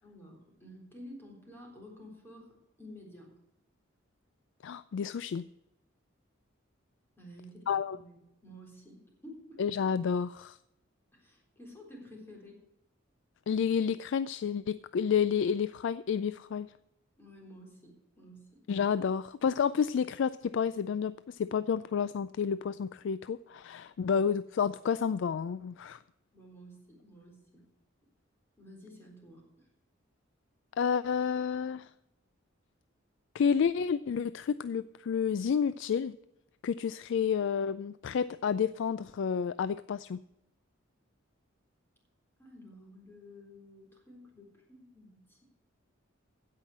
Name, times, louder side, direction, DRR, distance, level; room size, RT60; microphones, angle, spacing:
voice 1, 0.0-3.3 7.2-9.6 11.1-12.6 17.2-18.6 26.3-27.7 28.6-29.7 42.4-45.4, equal, 10° left, -1 dB, 3.8 m, -52 dB
voice 2, 4.6-5.5 7.7-8.0 9.6-10.6 13.5-16.7 18.7-26.0 30.8-31.9 33.3-36.1 36.6-40.2, left 7 dB, 65° left, 15 dB, 0.3 m, -30 dB
16.0 x 5.7 x 7.9 m, 0.86 s
head